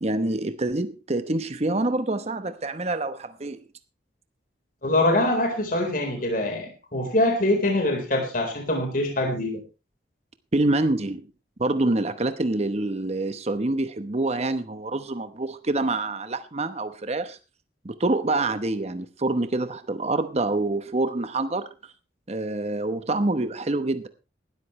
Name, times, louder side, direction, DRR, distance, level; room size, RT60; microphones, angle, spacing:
voice 1, 0.0-3.6 10.5-11.2 11.6-17.4 17.8-21.9 22.3-24.1, right 2 dB, 35° right, 0.9 m, -26 dB
voice 2, 4.8-9.6, left 1 dB, 50° left, 4.1 m, -24 dB
18.5 x 13.0 x 3.2 m
head